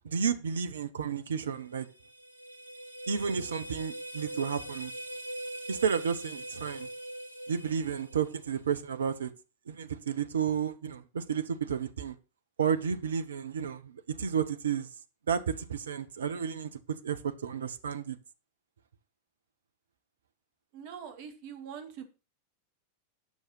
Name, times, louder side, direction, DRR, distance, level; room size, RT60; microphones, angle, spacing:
voice 1, 0.0-1.9 3.1-4.9 5.7-6.9 7.5-9.3 9.7-12.1 12.6-14.9 15.3-16.7 17.0-18.2, right 7 dB, 65° right, 0.9 m, -32 dB
sound 1, 1.5-8.6, right 1 dB, 85° left, 1.9 m, -42 dB
voice 2, 20.7-22.0, right 7 dB, 50° right, 1.8 m, -43 dB
9.5 x 6.5 x 5.6 m
figure-of-eight pair, 90°, 0 cm